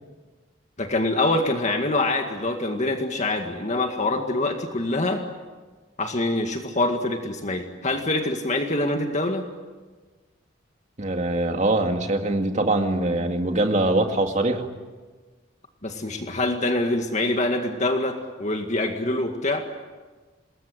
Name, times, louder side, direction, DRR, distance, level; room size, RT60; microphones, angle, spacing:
voice 1, 0.8-5.2 6.0-9.4 15.8-19.6, left 2 dB, 40° left, 4 dB, 2.0 m, -25 dB
voice 2, 11.0-14.7, right 2 dB, 40° right, 4 dB, 2.3 m, -23 dB
27.0 x 21.0 x 9.4 m, 1.4 s
head